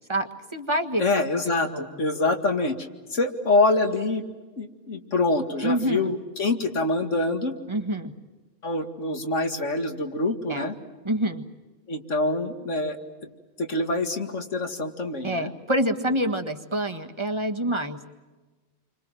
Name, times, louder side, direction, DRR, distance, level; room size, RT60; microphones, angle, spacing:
voice 1, 0.1-1.0 1.7-1.9 5.6-6.0 7.7-8.1 10.5-10.7 11.0-11.4 15.2-18.1, right 1 dB, 25° right, 5 dB, 1.6 m, -26 dB
voice 2, 1.0-4.2 4.6-7.6 8.6-10.8 11.9-13.0 13.2-13.3 13.6-15.5, left 2 dB, 80° left, 6 dB, 2.5 m, -25 dB
29.5 x 25.0 x 7.7 m, 1.2 s
omnidirectional pair, 1.3 m